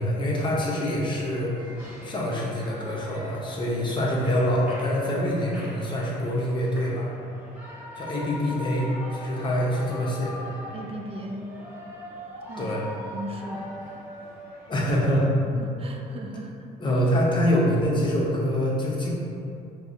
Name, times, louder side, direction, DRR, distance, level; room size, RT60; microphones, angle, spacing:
voice 1, 0.0-1.7 2.0-7.1 8.0-10.4 12.6-12.8 14.7-15.3 16.8-19.1, equal, 30° left, -4 dB, 0.7 m, -25 dB
Shout / Cheering, 1.1-14.9, left 1 dB, 10° right, 1.5 m, -42 dB
voice 2, 10.7-11.5 12.5-13.7 15.6-16.7, right 1 dB, 35° right, 2 dB, 0.4 m, -37 dB
5.2 x 2.0 x 2.5 m, 2.6 s
cardioid pair, 110°, 17 cm